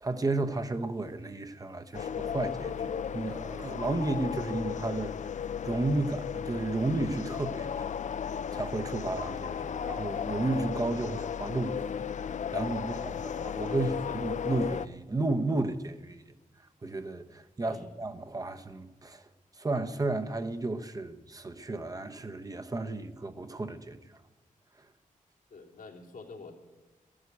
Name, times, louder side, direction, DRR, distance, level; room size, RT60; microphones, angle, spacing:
voice 1, 0.0-5.2 5.6-7.8 8.5-11.9 12.5-16.2 16.8-19.3 19.6-24.0 24.8-24.9, right 2 dB, 25° right, 0.7 m, -33 dB
sound 1, 1.9-14.9, left 7 dB, 60° left, 0.5 m, -35 dB
voice 2, 25.5-26.5, left 3 dB, 80° left, 2.9 m, -47 dB
14.5 x 11.0 x 8.3 m
wide cardioid pair, 165°, 14 cm